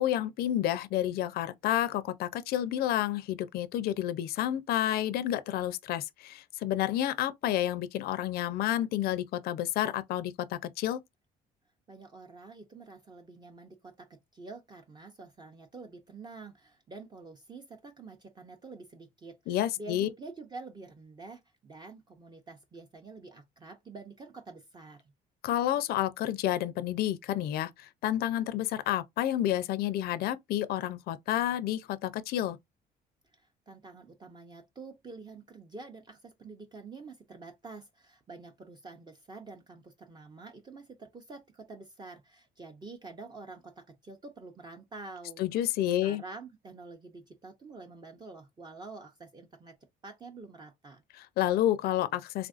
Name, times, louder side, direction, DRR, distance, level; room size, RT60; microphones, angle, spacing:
voice 1, 0.0-11.0 19.5-20.1 25.4-32.6 45.4-46.2 51.2-52.5, left 12 dB, 65° left, 0.4 m, -30 dB
voice 2, 11.9-25.0 33.3-45.7 46.0-49.8 50.0-51.0, right 3 dB, 25° right, 0.6 m, -47 dB
3.4 x 2.4 x 2.4 m
cardioid pair, 110°, 17 cm